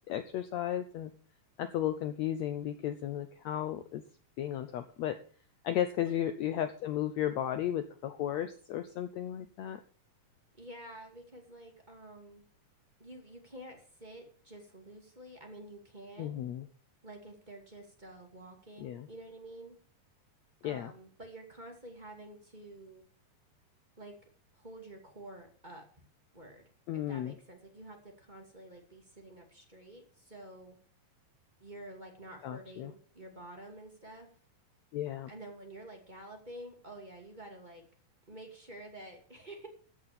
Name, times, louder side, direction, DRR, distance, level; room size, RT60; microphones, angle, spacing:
voice 1, 0.1-1.1 1.6-4.0 4.4-5.1 5.6-9.8 16.2-16.7 18.8-19.1 20.6-20.9 26.9-27.3 32.4-32.9 34.9-35.3, left 11 dB, 75° left, 9 dB, 1.6 m, -34 dB
voice 2, 10.6-12.4 13.0-16.4 17.0-19.8 20.6-23.0 24.0-24.2 24.5-25.9 26.3-26.6 26.9-30.8 31.6-34.3 35.3-37.9 38.3-39.7, right 1 dB, 15° right, 2 dB, 2.0 m, -49 dB
14.5 x 6.3 x 7.1 m, 0.43 s
omnidirectional pair, 3.9 m